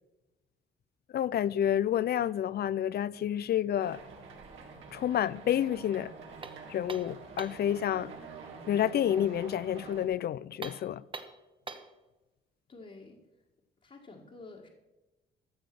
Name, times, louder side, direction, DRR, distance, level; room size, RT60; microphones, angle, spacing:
voice 1, 1.1-4.0 4.9-6.1 6.7-8.1 8.7-11.0, left 10 dB, 55° left, 0.4 m, -29 dB
sound 1, 3.8-10.1, right 4 dB, 80° right, 2.6 m, -47 dB
sound 2, 6.4-7.7 10.5-12.0, right 3 dB, 25° right, 1.0 m, -44 dB
voice 2, 12.7-13.2 13.8-14.7, left 3 dB, 35° left, 1.9 m, -49 dB
14.0 x 7.0 x 6.2 m
cardioid pair, 90°, 20 cm